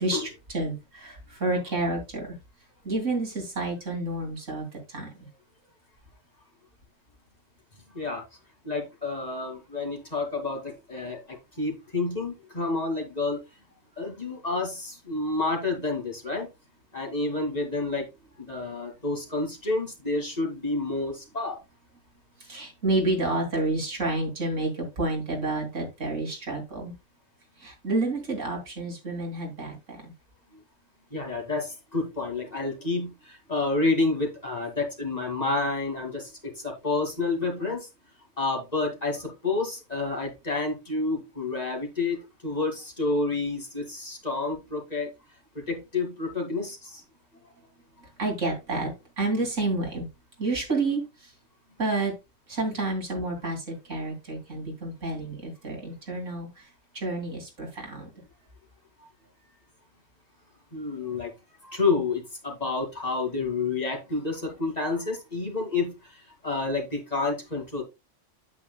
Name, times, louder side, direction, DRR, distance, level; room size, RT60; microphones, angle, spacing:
voice 1, 0.0-2.3 2.8-5.3 22.4-26.9 27.6-30.1 48.0-50.1 50.4-51.3 51.8-52.1 52.5-56.7 56.9-58.1, right 2 dB, 90° right, 1 dB, 3.4 m, -30 dB
voice 2, 8.6-13.4 14.0-16.5 16.9-18.1 18.4-21.6 31.1-37.9 38.4-45.1 45.7-47.0 60.7-61.3 61.6-67.8, left 3 dB, 35° left, 1 dB, 2.5 m, -29 dB
9.1 x 8.4 x 2.3 m, 0.24 s
omnidirectional pair, 1.2 m